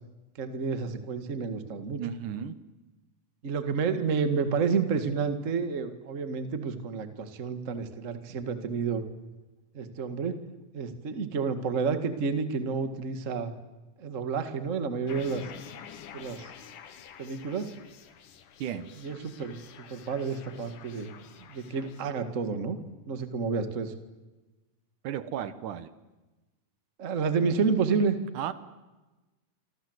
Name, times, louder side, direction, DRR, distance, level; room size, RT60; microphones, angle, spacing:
voice 1, 0.4-2.0 3.4-9.0 9.7-10.4 10.7-13.5 14.0-15.5 16.1-16.5 17.2-17.7 19.0-19.6 19.9-21.1 21.5-22.8 23.1-23.9 27.0-28.2, right 5 dB, 30° right, 9 dB, 1.6 m, -30 dB
voice 2, 2.0-2.6 18.6-19.0 25.0-25.9 28.3-28.5, right 9 dB, 75° right, 13 dB, 2.7 m, -34 dB
sound 1, 15.1-22.0, left 8 dB, 70° left, 3.1 m, -48 dB
27.5 x 26.5 x 8.0 m, 1.1 s
omnidirectional pair, 3.8 m